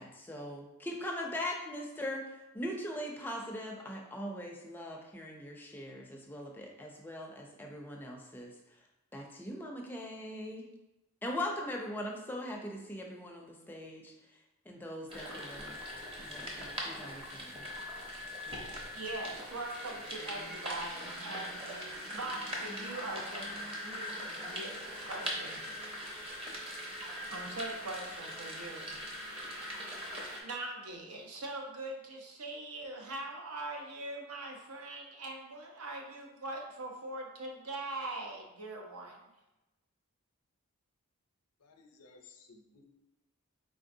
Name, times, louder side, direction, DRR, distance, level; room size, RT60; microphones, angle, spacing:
voice 1, 0.0-8.6 9.1-10.7 11.2-14.4 14.7-15.8 16.2-17.7, left 1 dB, 10° left, 0 dB, 0.4 m, -41 dB
sound 1, 15.1-30.4, equal, 25° right, 0.7 m, -41 dB
voice 2, 18.9-21.6 21.9-25.6 27.3-29.0 30.4-39.2, right 2 dB, 80° right, 1 dB, 0.7 m, -42 dB
voice 3, 41.6-42.8, left 4 dB, 90° left, 4 dB, 0.6 m, -58 dB
4.1 x 3.6 x 2.6 m, 0.96 s
head